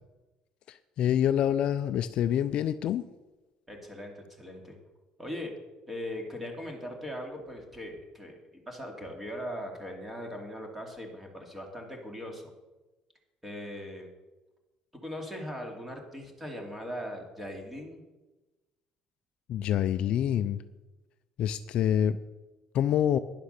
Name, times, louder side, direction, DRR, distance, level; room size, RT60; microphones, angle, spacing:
voice 1, 0.7-3.0 19.5-20.6 21.4-22.2 22.7-23.2, left 10 dB, 55° left, 11 dB, 0.5 m, -26 dB
voice 2, 3.7-4.8 5.2-5.5 5.9-8.4 8.7-12.5 13.4-14.1 15.0-18.0, equal, 10° right, 2 dB, 2.6 m, -39 dB
11.5 x 10.5 x 6.7 m, 1.1 s
cardioid pair, 160°, 2 cm